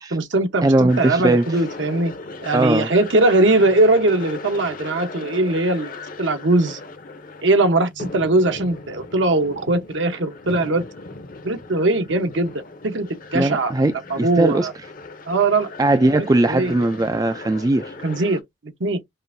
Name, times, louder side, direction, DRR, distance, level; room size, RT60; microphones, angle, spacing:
voice 1, 0.1-2.1 2.4-6.8 7.4-10.8 11.4-12.5 12.8-13.7 14.1-14.7 15.3-15.7 16.4-16.7 18.0-18.4 18.8-19.0, right 2 dB, 70° right, 1.0 m, -20 dB
voice 2, 0.6-1.6 2.5-2.9 13.3-14.7 15.8-17.9, right 2 dB, 20° right, 0.3 m, -19 dB
sound 1, 0.9-18.4, left 3 dB, 45° left, 0.7 m, -38 dB
5.4 x 2.6 x 2.6 m
head